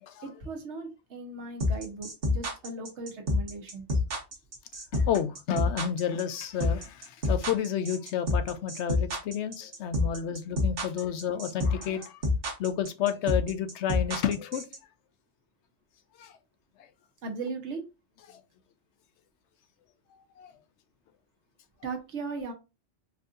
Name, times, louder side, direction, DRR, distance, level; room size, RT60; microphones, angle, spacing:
voice 1, 0.2-3.8 17.2-17.8 21.8-22.5, right 3 dB, 75° right, 1.2 m, -37 dB
sound 1, 1.6-14.8, left 2 dB, 55° right, 1.3 m, -27 dB
voice 2, 4.9-12.2 12.6-14.6 16.2-16.3 18.3-18.4 20.4-20.5, left 9 dB, 75° left, 0.9 m, -31 dB
4.5 x 2.6 x 2.5 m
omnidirectional pair, 1.2 m